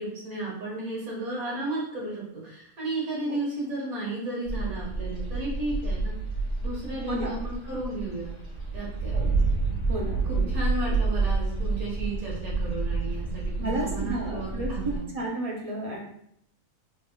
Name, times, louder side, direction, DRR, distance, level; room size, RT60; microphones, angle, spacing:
voice 1, 0.0-6.1 6.6-8.3 8.7-9.4 10.3-15.0, right 2 dB, 80° right, -4 dB, 1.9 m, -33 dB
sound 1, 4.5-15.0, right 3 dB, 25° left, 1.5 m, -29 dB
voice 2, 9.9-10.6 10.9-11.0 13.6-16.0, right 2 dB, 45° right, -2 dB, 0.5 m, -32 dB
4.1 x 3.5 x 2.3 m, 0.72 s
omnidirectional pair, 1.5 m